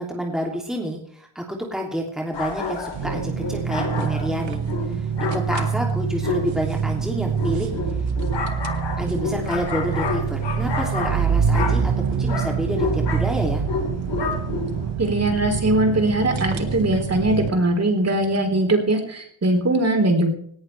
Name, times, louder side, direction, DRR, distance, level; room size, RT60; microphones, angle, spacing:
voice 1, 0.0-4.7 4.9-5.1 5.3-7.7 9.0-11.9 12.2-13.6, equal, ahead, 0 dB, 2.8 m, -28 dB
sound 1, 2.3-14.9, left 4 dB, 60° left, 5.1 m, -30 dB
sound 2, 2.9-17.5, right 6 dB, 70° right, 1.7 m, -25 dB
voice 2, 15.0-20.3, right 1 dB, 30° right, 3 dB, 4.2 m, -21 dB
18.5 x 17.5 x 3.4 m, 0.63 s
cardioid pair, 125°, 48 cm